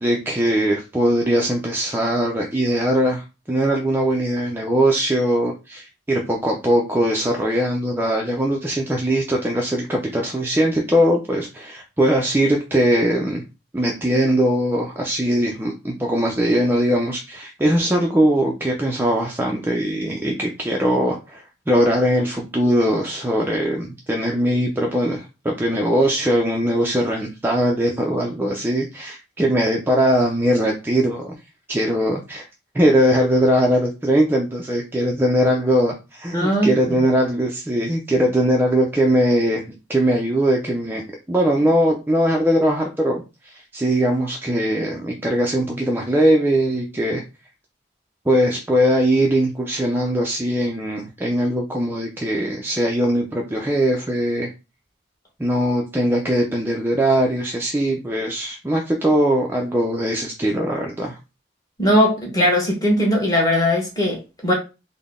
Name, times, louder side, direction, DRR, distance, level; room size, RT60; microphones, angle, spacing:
voice 1, 0.0-13.4 13.7-31.3 31.7-32.5 32.7-41.0 41.3-47.2 48.3-54.5 55.4-61.2, equal, 10° right, 0.3 m, -20 dB
voice 2, 36.3-37.0 61.8-64.5, equal, 20° left, 1.2 m, -19 dB
3.7 x 2.0 x 3.6 m
head